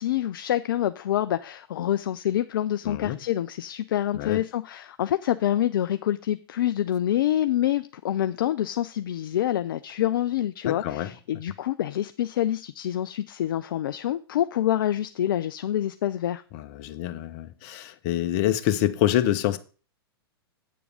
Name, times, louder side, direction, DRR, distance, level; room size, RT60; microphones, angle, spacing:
voice 1, 0.0-16.4, left 12 dB, 60° left, 0.5 m, -26 dB
voice 2, 2.8-3.2 4.1-4.4 10.6-11.1 16.5-19.6, left 12 dB, 45° left, 1.0 m, -26 dB
8.4 x 6.9 x 4.8 m
figure-of-eight pair, 100°, 13 cm